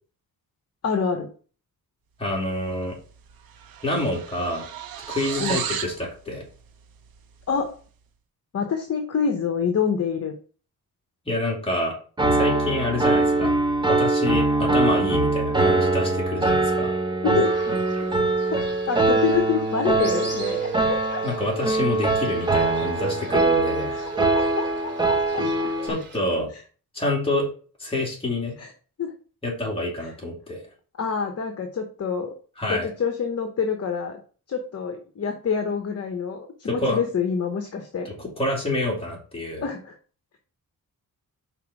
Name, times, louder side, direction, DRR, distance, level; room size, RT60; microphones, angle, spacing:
voice 1, 0.8-1.3 5.4-5.6 7.5-7.7 8.5-10.3 17.2-17.7 18.5-21.2 23.9-26.0 28.6-28.7 29.0-29.1 31.0-32.3 32.7-34.2 34.5-38.1 39.6-40.0, left 6 dB, 45° left, 5 dB, 1.0 m, -27 dB
voice 2, 2.2-3.0 3.8-4.6 5.1-6.4 11.3-12.0 12.3-13.6 13.9-16.9 21.2-23.9 25.8-26.5 26.9-27.5 27.8-28.5 29.4-30.6 32.6-32.9 36.6-37.0 38.0-39.7, left 1 dB, 15° left, -2 dB, 2.7 m, -27 dB
sound 1, 2.8-3.0 3.3-6.0, right 9 dB, 85° right, 0.9 m, -33 dB
Piano, 12.2-25.9, right 2 dB, 15° right, 0.9 m, -22 dB
Fowl, 17.4-26.2, right 6 dB, 30° right, 3.2 m, -35 dB
5.8 x 4.3 x 6.0 m, 0.40 s
wide cardioid pair, 150°, 35 cm